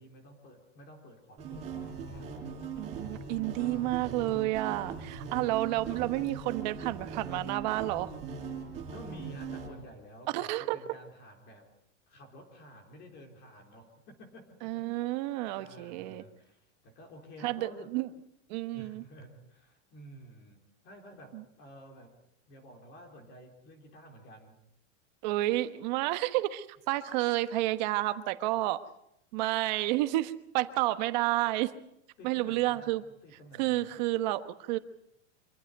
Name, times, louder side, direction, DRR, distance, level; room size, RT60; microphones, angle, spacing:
voice 1, 0.0-2.3 3.6-4.2 5.1-5.8 8.4-11.7 12.1-14.8 15.1-17.9 18.7-22.1 22.5-24.6 32.2-34.0, right 1 dB, 30° left, 3 dB, 3.9 m, -51 dB
sound 1, 1.4-9.7, right 5 dB, 20° right, 5.1 m, -40 dB
voice 2, 2.7-8.1 10.3-10.8 14.6-16.2 17.4-18.1 18.5-19.0 21.3-21.4 25.2-28.8 29.3-31.7 32.2-33.0 33.6-34.8, right 17 dB, 40° right, 10 dB, 1.2 m, -30 dB
26.0 x 15.0 x 8.1 m, 0.78 s
supercardioid pair, 175°, 36 cm